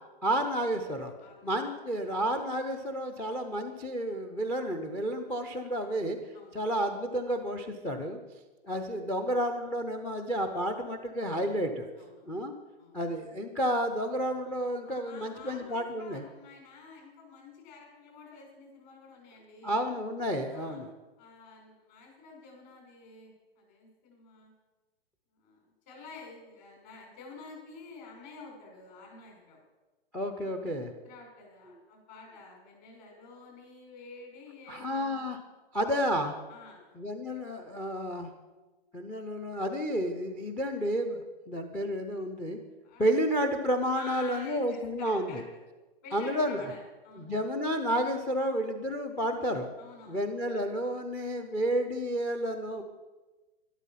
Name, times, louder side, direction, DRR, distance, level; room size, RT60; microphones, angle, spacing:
voice 1, 0.2-1.1 1.4-6.2 6.5-8.2 8.6-11.9 12.2-12.5 12.9-16.2 19.6-20.9 30.1-30.9 34.7-35.4 35.7-36.3 37.0-38.3 38.9-41.2 41.5-42.6 43.0-45.4 46.1-46.6 47.2-49.7 50.1-52.8, equal, 5° left, 5 dB, 0.5 m, -31 dB
voice 2, 1.2-1.5 6.3-6.6 12.0-12.4 12.8-13.0 14.8-19.7 20.5-20.8 21.2-24.5 25.3-29.6 30.3-35.3 36.5-36.9 42.8-43.0 43.9-45.4 46.0-47.3 49.8-50.3, left 4 dB, 45° left, 0 dB, 5.7 m, -50 dB
12.0 x 11.5 x 5.7 m, 1.2 s
hypercardioid pair, 145°, 30 cm